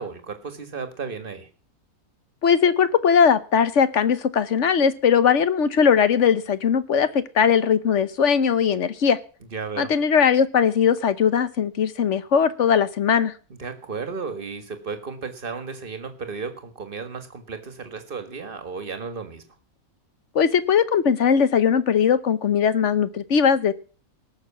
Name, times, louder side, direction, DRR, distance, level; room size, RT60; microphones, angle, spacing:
voice 1, 0.0-1.5 9.5-9.9 13.6-19.4, right 5 dB, 35° right, 8 dB, 1.9 m, -34 dB
voice 2, 2.4-9.2 9.8-13.3 20.3-23.7, left 7 dB, 55° left, 14 dB, 1.1 m, -19 dB
18.5 x 6.7 x 7.2 m, 0.38 s
omnidirectional pair, 1.6 m